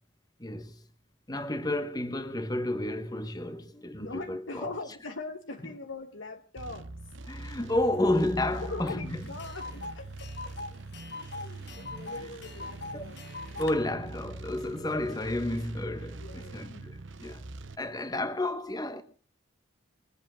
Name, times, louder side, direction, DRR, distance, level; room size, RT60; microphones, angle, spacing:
voice 1, 0.4-0.8 1.3-4.7 7.3-9.2 11.9-12.1 12.9-13.0 13.6-17.4 17.8-19.0, left 1 dB, 20° left, 1.1 m, -31 dB
voice 2, 4.0-7.1 8.5-10.6 11.1-13.2 15.8-16.9, left 3 dB, 70° left, 1.2 m, -42 dB
sound 1, 6.6-17.8, right 2 dB, 65° right, 0.9 m, -43 dB
Tick, 8.9-9.0 9.2-13.7, left 3 dB, 55° left, 1.3 m, -42 dB
21.5 x 8.5 x 6.3 m
head